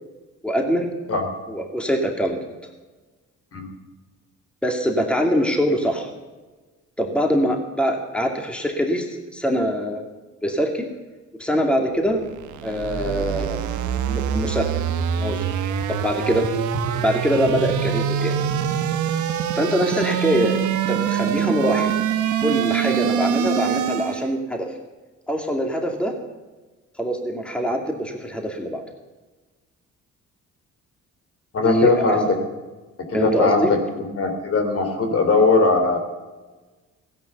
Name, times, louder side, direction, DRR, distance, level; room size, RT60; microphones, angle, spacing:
voice 1, 0.4-0.9 1.5-2.5 4.6-6.1 7.0-10.1 10.4-10.9 11.4-12.2 12.6-13.7 14.1-14.7 15.2-15.5 15.9-16.5 17.0-18.4 19.6-21.9 22.4-24.7 25.3-26.1 27.0-28.8 31.6-32.2 33.1-33.7, equal, 5° left, 2 dB, 2.4 m, -23 dB
sound 1, 12.1-24.3, right 8 dB, 75° right, 1.2 m, -24 dB
voice 2, 31.5-32.3 33.1-36.0, left 3 dB, 50° left, 5 dB, 3.3 m, -20 dB
16.0 x 11.0 x 7.0 m, 1.3 s
cardioid pair, 90°, 30 cm